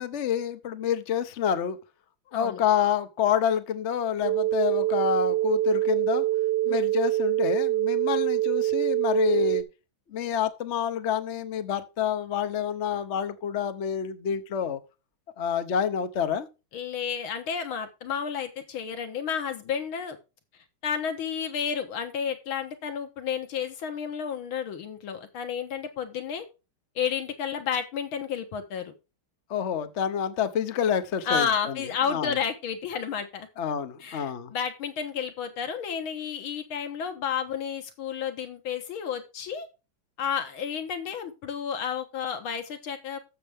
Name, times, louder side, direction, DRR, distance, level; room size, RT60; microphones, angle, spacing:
voice 1, 0.0-1.8 2.3-6.3 6.7-9.6 10.1-14.8 15.4-16.5 29.5-31.8 32.1-32.4 33.6-34.5, left 8 dB, 50° left, 0.9 m, -28 dB
voice 2, 2.3-2.6 6.6-6.8 16.7-20.2 20.8-26.5 27.0-28.9 31.3-33.5 34.0-39.7 40.2-43.2, left 7 dB, 75° left, 2.1 m, -31 dB
sound 1, 4.2-9.6, right 15 dB, 40° right, 0.4 m, -25 dB
13.5 x 6.7 x 3.5 m
omnidirectional pair, 2.3 m